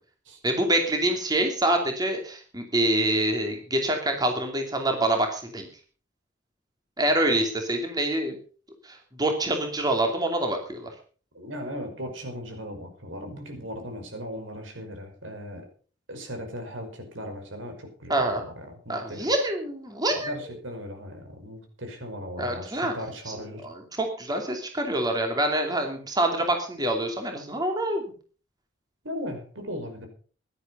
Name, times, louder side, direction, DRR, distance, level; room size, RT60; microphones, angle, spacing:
voice 1, 0.4-5.7 7.0-8.4 8.8-10.9 18.1-18.4 18.9-20.3 22.4-22.9 23.3-23.4 23.6-28.0, right 1 dB, 20° right, 4 dB, 2.7 m, -26 dB
voice 2, 11.3-15.7 16.1-19.3 20.2-23.6 29.0-30.1, equal, 90° right, 4 dB, 5.5 m, -37 dB
16.5 x 11.5 x 5.5 m, 0.41 s
head